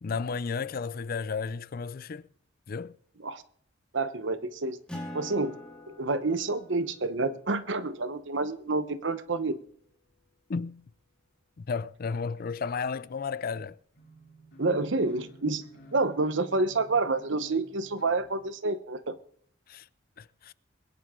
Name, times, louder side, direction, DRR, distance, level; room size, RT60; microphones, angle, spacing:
voice 1, 0.0-2.3 2.7-3.0 10.5-10.8 11.6-13.8 19.7-19.9 20.2-20.5, left 5 dB, 50° left, 0.4 m, -33 dB
voice 2, 3.9-4.8 5.1-5.6 5.9-9.6 14.6-15.6 15.9-19.2, right 3 dB, 70° right, 1.0 m, -28 dB
Acoustic guitar, 4.9-9.8, left 1 dB, 5° left, 4.2 m, -46 dB
sound 1, 13.9-18.5, equal, 65° left, 5.8 m, -53 dB
21.5 x 10.5 x 3.7 m
head